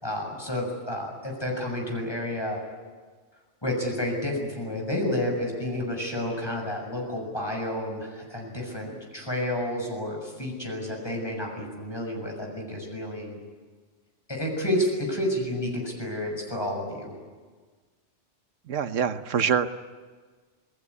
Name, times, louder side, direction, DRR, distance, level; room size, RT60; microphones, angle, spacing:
voice 1, 0.0-2.6 3.6-13.4 14.3-17.1, left 1 dB, 20° left, 1 dB, 6.6 m, -30 dB
voice 2, 18.7-19.7, right 7 dB, 80° right, 11 dB, 1.3 m, -25 dB
27.5 x 19.0 x 9.7 m, 1.5 s
omnidirectional pair, 1.3 m